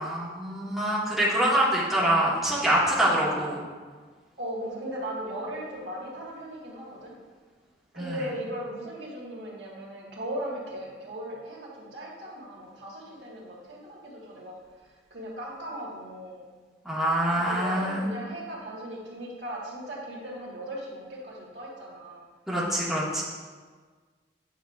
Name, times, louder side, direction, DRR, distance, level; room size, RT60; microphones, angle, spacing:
voice 1, 0.0-3.6 8.0-8.2 16.8-18.1 22.5-23.2, right 1 dB, ahead, -8 dB, 1.4 m, -25 dB
voice 2, 4.4-7.1 7.9-14.6 15.1-16.4 17.3-22.2, right 1 dB, 85° right, -3 dB, 1.5 m, -37 dB
9.3 x 6.0 x 2.4 m, 1.5 s
head